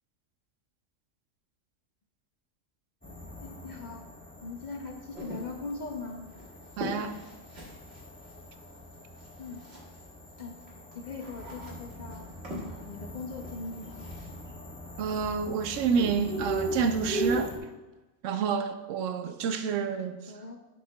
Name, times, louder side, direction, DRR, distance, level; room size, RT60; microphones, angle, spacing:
sound 1, 3.0-17.6, right 1 dB, 10° left, 1.1 m, -40 dB
voice 1, 3.4-4.0 4.4-6.3 9.4-9.6 10.4-10.5 10.9-12.2 12.6-14.1 20.3-20.6, left 3 dB, 50° left, 0.6 m, -40 dB
sound 2, 5.2-10.1 10.3-14.3, equal, 55° right, 2.1 m, -43 dB
voice 2, 6.8-7.2 15.0-17.7 18.2-20.3, right 6 dB, 80° right, 0.9 m, -29 dB
12.0 x 6.5 x 2.2 m
omnidirectional pair, 1.3 m